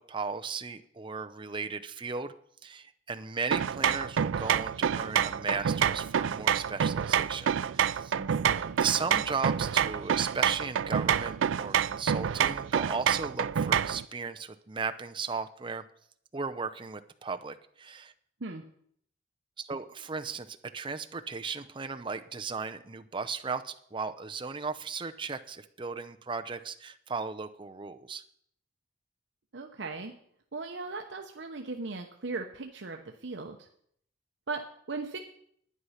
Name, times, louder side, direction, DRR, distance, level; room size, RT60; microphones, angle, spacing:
voice 1, 0.0-2.3 2.6-8.1 8.8-15.8 16.3-18.1 19.6-28.2, right 5 dB, 25° right, 8 dB, 0.7 m, -36 dB
sound 1, 3.5-14.0, right 8 dB, 90° right, 0.4 m, -28 dB
voice 2, 8.1-8.8 18.4-18.6 29.5-30.1 30.5-33.7 34.5-34.6 34.9-35.2, right 3 dB, 70° right, 4 dB, 0.9 m, -38 dB
11.0 x 9.7 x 5.7 m, 0.66 s
head